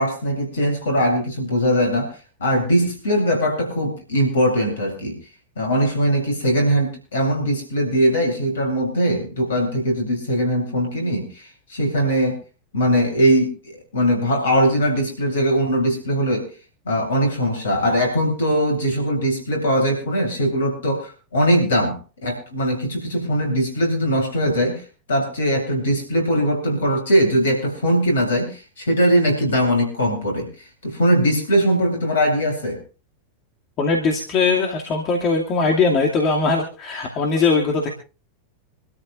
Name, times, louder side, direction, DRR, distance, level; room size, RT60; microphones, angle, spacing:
voice 1, 0.0-2.1 2.4-5.2 5.6-12.4 12.7-16.5 16.9-30.5 30.8-32.8, equal, 65° left, 3 dB, 8.0 m, -20 dB
voice 2, 33.8-37.9, left 4 dB, 35° left, 0 dB, 2.5 m, -20 dB
27.0 x 13.5 x 2.5 m, 0.33 s
figure-of-eight pair, 90°, 0 cm